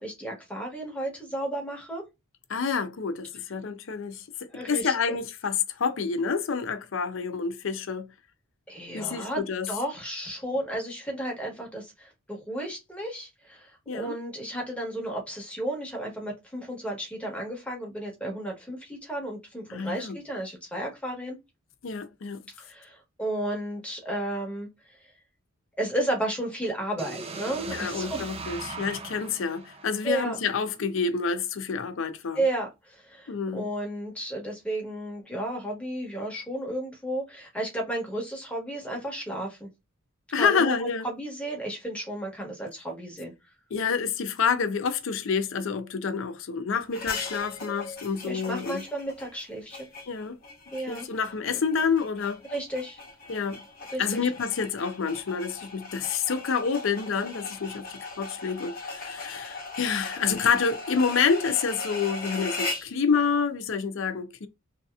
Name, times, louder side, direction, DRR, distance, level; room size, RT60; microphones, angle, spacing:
voice 1, 0.0-2.0 4.5-5.2 8.7-21.4 22.6-24.7 25.8-28.3 30.0-30.4 32.3-39.7 40.3-43.3 48.3-49.9 50.7-51.1 51.5-51.6 52.5-53.0 53.9-54.3, right 1 dB, 5° left, 1.1 m, -33 dB
voice 2, 2.5-4.2 4.7-8.1 8.9-9.7 13.9-14.1 19.7-20.2 21.8-22.4 27.7-32.4 33.3-33.7 40.3-41.1 43.7-48.8 50.1-50.4 50.9-52.4 53.3-53.6 54.0-64.5, left 5 dB, 65° left, 0.5 m, -28 dB
sound 1, 27.0-30.9, right 3 dB, 25° right, 0.4 m, -39 dB
sound 2, 46.9-63.0, left 3 dB, 40° left, 0.9 m, -39 dB
3.2 x 2.8 x 2.3 m
head